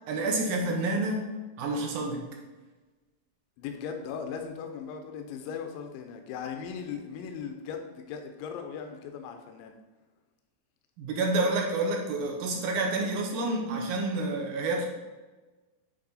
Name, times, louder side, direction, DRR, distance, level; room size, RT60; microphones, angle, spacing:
voice 1, 0.1-1.3 1.6-2.2 11.0-14.9, right 2 dB, 70° right, 0 dB, 2.2 m, -28 dB
voice 2, 3.6-9.8, left 6 dB, 80° left, 5 dB, 2.2 m, -38 dB
8.7 x 3.1 x 4.0 m, 1.2 s
omnidirectional pair, 4.1 m